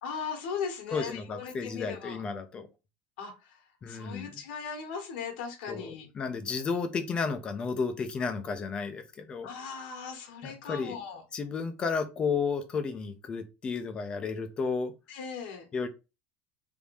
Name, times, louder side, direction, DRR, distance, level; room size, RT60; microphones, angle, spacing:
voice 1, 0.0-2.2 3.2-3.6 3.9-6.1 9.4-11.2 15.1-15.6, left 6 dB, 80° left, 1.4 m, -38 dB
voice 2, 0.9-2.7 3.8-4.3 5.7-9.5 10.4-11.0 11.3-14.9 15.7-15.9, left 5 dB, 20° left, 0.5 m, -32 dB
3.5 x 2.7 x 4.6 m
cardioid pair, 175°, 5 cm